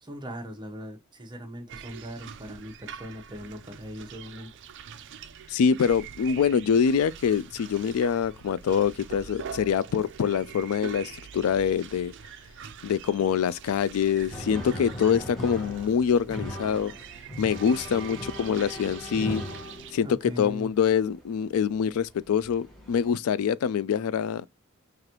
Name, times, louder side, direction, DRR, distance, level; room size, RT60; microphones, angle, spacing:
voice 1, 0.0-4.5 20.0-20.7, equal, 20° right, 0.8 m, -40 dB
sound 1, 1.7-19.9, right 7 dB, 55° right, 0.4 m, -44 dB
voice 2, 5.5-12.1 12.8-16.9 17.4-19.4 19.9-24.5, left 7 dB, 70° left, 0.3 m, -25 dB
sound 2, 14.3-20.3 21.5-21.6 22.4-23.1, left 1 dB, ahead, 1.1 m, -38 dB
4.8 x 2.5 x 2.9 m
head